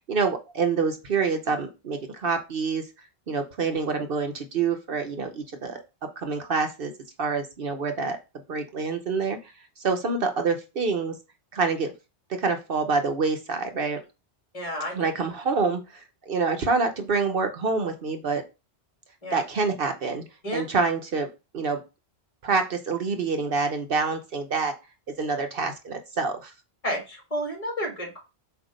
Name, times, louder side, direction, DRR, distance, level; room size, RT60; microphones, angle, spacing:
voice 1, 0.1-2.8 3.3-5.8 6.2-6.9 7.2-8.2 8.5-11.1 11.5-11.9 12.4-14.0 15.0-18.4 19.3-20.2 20.5-21.3 21.5-21.8 22.4-24.7 25.2-26.5, right 4 dB, 60° right, 6 dB, 1.0 m, -26 dB
voice 2, 14.5-15.1 19.2-19.4 20.4-20.6 26.8-28.2, equal, 35° left, 1 dB, 2.0 m, -31 dB
7.8 x 2.7 x 5.0 m, 0.27 s
omnidirectional pair, 1.1 m